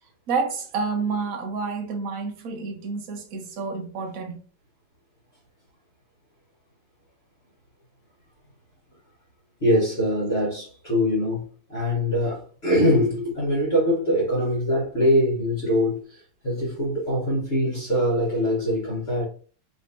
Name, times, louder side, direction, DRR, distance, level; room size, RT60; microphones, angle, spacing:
voice 1, 0.3-4.4, right 4 dB, 60° right, 1.0 m, -29 dB
voice 2, 9.6-19.2, equal, 35° left, 1.4 m, -23 dB
3.3 x 3.1 x 2.8 m
omnidirectional pair, 2.0 m